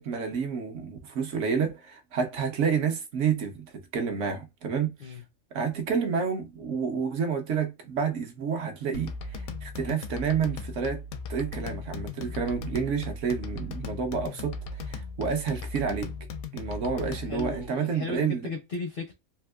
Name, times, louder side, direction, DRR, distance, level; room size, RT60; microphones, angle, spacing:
voice 1, 0.0-5.2 5.5-11.0 11.3-14.6 14.8-16.1 16.5-18.5, right 6 dB, 65° right, 0.9 m, -29 dB
sound 1, 8.9-17.7, left 3 dB, 80° left, 1.0 m, -37 dB
voice 2, 17.1-19.1, left 3 dB, 60° left, 0.6 m, -36 dB
3.5 x 2.6 x 2.2 m
omnidirectional pair, 1.5 m